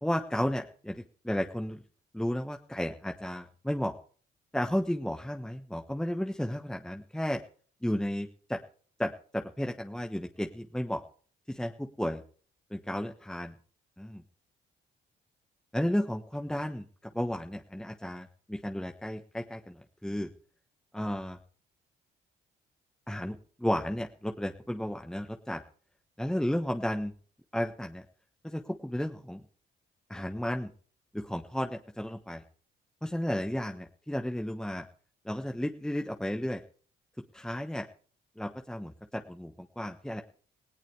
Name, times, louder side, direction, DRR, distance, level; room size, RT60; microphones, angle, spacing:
voice 1, 0.0-1.8 2.1-3.9 4.5-7.4 7.8-8.6 9.0-11.0 11.5-12.2 12.7-13.5 14.0-14.2 15.7-16.8 17.1-20.3 20.9-21.4 23.1-25.6 26.2-27.1 27.5-28.0 28.4-29.4 30.1-30.7 31.1-32.4 33.0-34.8 35.2-36.6 37.3-37.9 38.4-40.2, equal, 5° left, 5 dB, 1.2 m, -33 dB
18.5 x 17.5 x 3.4 m, 0.43 s
cardioid pair, 90°, 20 cm